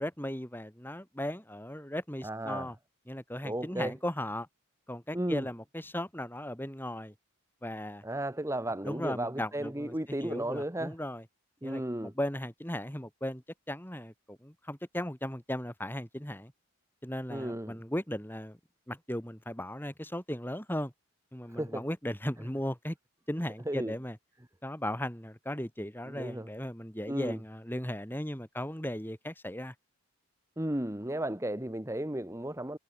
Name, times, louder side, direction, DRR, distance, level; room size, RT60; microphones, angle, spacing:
voice 1, 0.0-2.8 3.1-4.5 4.9-7.1 7.6-8.0 8.8-11.2 11.6-16.5 17.0-18.6 18.9-20.9 21.3-23.0 23.3-24.2 24.6-29.7, left 1 dB, 10° left, 3.7 m, -37 dB
voice 2, 2.2-2.7 3.4-3.9 5.1-5.5 8.0-10.9 11.6-12.1 17.3-17.8 21.5-21.9 23.7-23.9 26.1-26.5 27.1-27.4 30.6-32.8, right 1 dB, 15° right, 1.1 m, -34 dB
head